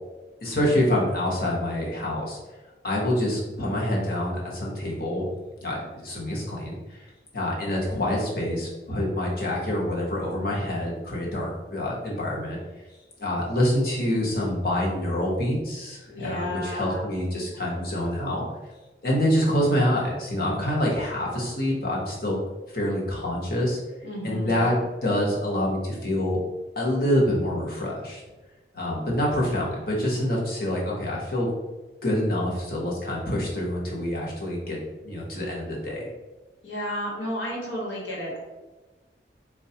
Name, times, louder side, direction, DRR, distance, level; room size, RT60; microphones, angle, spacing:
voice 1, 0.4-2.4 2.8-5.3 5.6-7.0 7.3-12.6 13.2-18.5 19.0-22.4 22.7-23.8 24.2-24.8 25.0-26.4 26.8-28.2 28.7-31.5 32.0-36.1, left 1 dB, 55° left, -3 dB, 0.9 m, -26 dB
voice 2, 16.1-17.1 24.0-24.7 36.6-38.4, left 1 dB, 90° left, -3 dB, 1.2 m, -32 dB
4.2 x 2.2 x 2.8 m, 1.2 s
head